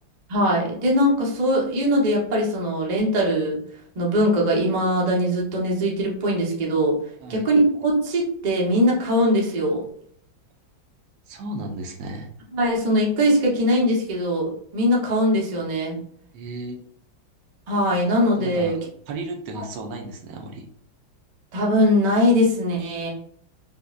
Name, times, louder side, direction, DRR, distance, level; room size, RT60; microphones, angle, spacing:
voice 1, 0.3-3.6 3.9-7.0 7.3-9.8 12.5-16.0 17.7-18.7 21.5-23.1, equal, 55° right, -3 dB, 0.4 m, -21 dB
voice 2, 11.3-12.3 16.3-16.8 18.4-18.7 19.1-20.6, right 2 dB, 75° right, 2 dB, 1.2 m, -34 dB
5.3 x 2.1 x 2.4 m, 0.63 s
omnidirectional pair, 2.1 m